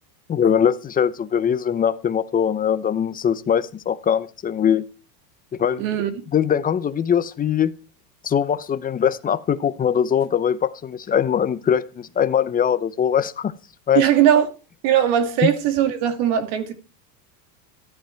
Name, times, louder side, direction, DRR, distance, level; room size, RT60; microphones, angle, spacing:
voice 1, 0.3-4.8 5.6-5.8 6.3-7.7 8.2-13.5 13.9-14.0 15.4-15.5, left 8 dB, 20° left, 0.7 m, -21 dB
voice 2, 5.8-6.2 13.9-14.5 14.8-16.7, right 10 dB, 55° right, 2.6 m, -19 dB
13.5 x 11.5 x 4.5 m
supercardioid pair, 130°, 48 cm